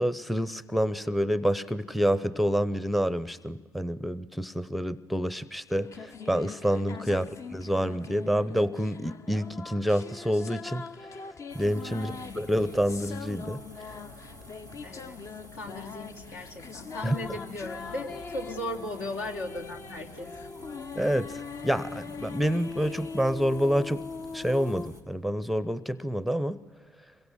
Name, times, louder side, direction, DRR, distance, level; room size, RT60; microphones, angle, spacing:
voice 1, 0.0-11.2 11.5-13.6 17.0-17.2 20.9-24.1 24.3-26.6, equal, ahead, 18 dB, 0.8 m, -28 dB
sound 1, 5.8-24.9, left 5 dB, 35° left, 0.9 m, -42 dB
sound 2, 11.5-25.0, equal, 90° left, 2.8 m, -50 dB
voice 2, 11.9-12.4 14.8-15.2 15.5-20.3, left 2 dB, 65° left, 1 dB, 3.2 m, -37 dB
26.5 x 22.5 x 9.4 m, 1.2 s
figure-of-eight pair, 55°, 9 cm